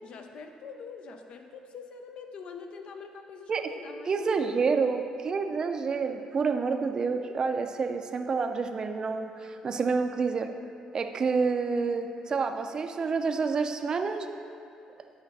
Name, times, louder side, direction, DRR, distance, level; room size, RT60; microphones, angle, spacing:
voice 1, 0.0-4.5, left 5 dB, 60° left, 5 dB, 0.7 m, -44 dB
voice 2, 4.1-10.5 10.9-14.3, right 5 dB, 35° right, 6 dB, 0.5 m, -28 dB
8.1 x 5.8 x 4.1 m, 2.5 s
cardioid pair, 100°, 2 cm